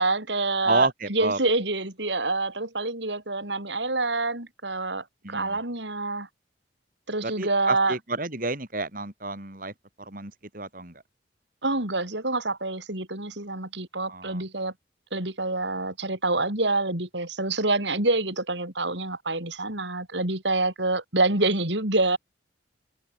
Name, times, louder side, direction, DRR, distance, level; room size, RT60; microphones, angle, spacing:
voice 1, 0.0-6.3 7.1-8.0 11.6-14.7 15.1-22.2, right 2 dB, 70° right, 6.1 m, -27 dB
voice 2, 0.7-1.4 5.2-5.6 7.2-9.7 10.0-10.9 14.1-14.4, right 3 dB, 45° right, 3.8 m, -30 dB
head